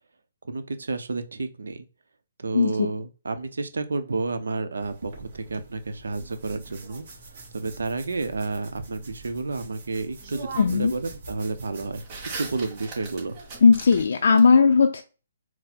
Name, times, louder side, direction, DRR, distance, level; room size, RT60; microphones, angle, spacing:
voice 1, 0.4-1.8 2.4-7.0 7.5-12.0 12.4-13.4, right 3 dB, 85° right, 9 dB, 0.7 m, -31 dB
sound 1, 4.8-14.1, right 3 dB, 45° right, 1.9 m, -47 dB
sound 2, 6.2-7.5 9.7-9.8 10.2-11.0 11.3-14.5, right 4 dB, 25° right, 2.0 m, -40 dB
voice 2, 10.6-10.9 13.6-15.0, left 5 dB, 65° left, 5 dB, 0.4 m, -17 dB
4.1 x 2.1 x 4.3 m, 0.34 s
hypercardioid pair, 155°, 0 cm